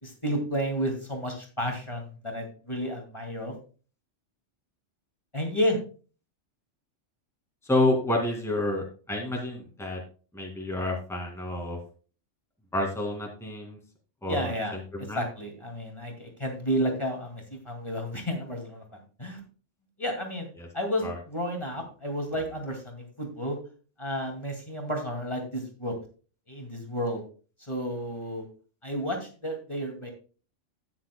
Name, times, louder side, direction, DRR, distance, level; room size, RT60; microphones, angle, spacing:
voice 1, 0.0-3.5 5.3-5.8 14.2-14.7 15.1-18.8 19.2-19.4 20.0-20.5 20.7-23.6 24.0-25.9 26.5-27.2 27.6-28.5 28.8-30.1, equal, 25° left, 1 dB, 2.3 m, -31 dB
voice 2, 7.6-10.0 10.3-11.8 12.7-13.8 14.2-15.2 20.6-20.7 21.0-21.2, left 2 dB, ahead, 0 dB, 2.1 m, -29 dB
13.0 x 9.6 x 2.2 m, 0.37 s
omnidirectional pair, 1.3 m